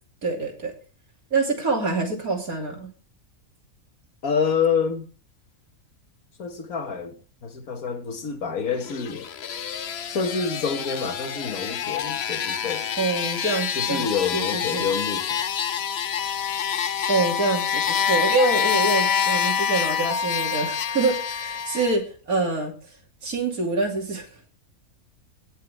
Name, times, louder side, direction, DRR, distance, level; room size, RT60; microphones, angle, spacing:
voice 1, 0.2-0.7 1.3-2.9 13.0-14.1 14.3-14.9 17.1-22.7 23.2-24.5, right 3 dB, 90° right, 3.3 m, -26 dB
voice 2, 4.2-5.1 6.4-9.3 10.1-12.9 13.8-15.4, left 6 dB, 80° left, 2.0 m, -27 dB
sound 1, 8.7-21.9, left 8 dB, 55° left, 0.9 m, -26 dB
18.0 x 6.7 x 3.5 m
omnidirectional pair, 1.5 m